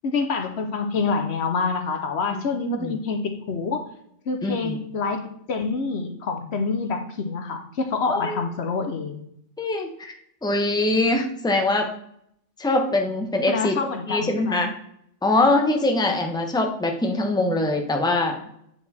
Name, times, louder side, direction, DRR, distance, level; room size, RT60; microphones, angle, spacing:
voice 1, 0.0-3.9 4.3-9.2 13.5-14.6, left 4 dB, 70° left, 6 dB, 1.1 m, -27 dB
voice 2, 2.3-3.0 4.4-4.8 8.1-8.4 9.6-10.1 10.4-11.9 12.6-13.7 14.1-14.7 15.2-18.4, left 2 dB, 5° left, 3 dB, 0.9 m, -23 dB
8.5 x 4.7 x 4.1 m, 0.71 s
omnidirectional pair, 1.2 m